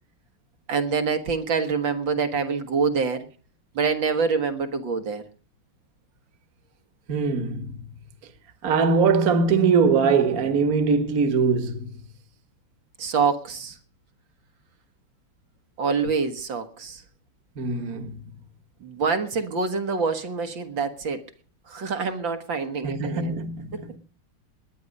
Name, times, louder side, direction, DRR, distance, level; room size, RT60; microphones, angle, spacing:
voice 1, 0.7-3.3 3.8-5.2 13.0-13.8 15.8-17.0 18.8-21.2 21.7-23.3 23.7-23.8, right 5 dB, 65° right, 2.1 m, -26 dB
voice 2, 7.1-7.8 8.6-11.9 17.6-18.1 22.8-23.9, right 5 dB, 45° right, 1.9 m, -22 dB
19.5 x 10.5 x 5.3 m
omnidirectional pair, 2.3 m